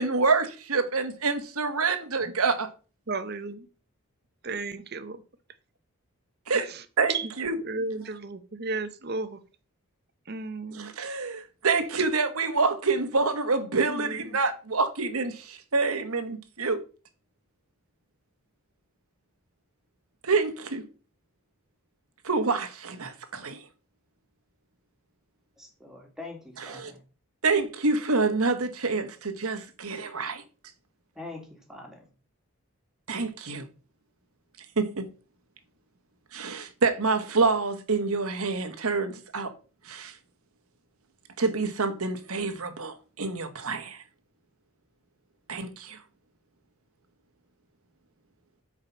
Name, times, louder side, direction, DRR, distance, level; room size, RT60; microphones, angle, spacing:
voice 1, 0.0-2.7 6.5-6.7 7.0-7.5 10.8-16.8 20.2-20.8 22.2-23.6 26.7-26.9 27.4-30.4 33.1-33.7 34.8-35.1 36.3-39.5 39.8-40.1 41.4-44.0 45.5-46.0, right 4 dB, 80° right, 1.3 m, -27 dB
voice 2, 3.1-3.7 4.4-5.2 6.5-7.3 7.6-9.4 10.3-10.9 13.9-14.4, right 3 dB, 45° right, 0.8 m, -34 dB
voice 3, 25.6-27.0 31.2-32.1, left 2 dB, ahead, 2.0 m, -43 dB
8.0 x 4.9 x 5.6 m
head